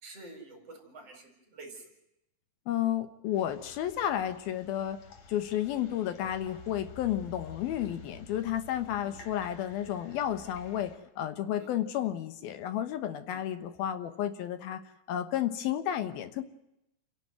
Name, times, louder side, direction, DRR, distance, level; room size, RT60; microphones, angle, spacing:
voice 1, 0.0-1.8 9.0-9.1 11.6-11.7 13.3-13.4, right 2 dB, 40° right, 4 dB, 5.4 m, -48 dB
voice 2, 2.7-5.0 5.3-14.8 15.1-16.4, left 11 dB, 80° left, 10 dB, 3.1 m, -32 dB
sound 1, 3.3-11.0, left 4 dB, 50° left, 3.5 m, -51 dB
30.0 x 11.0 x 9.1 m, 0.83 s
omnidirectional pair, 4.3 m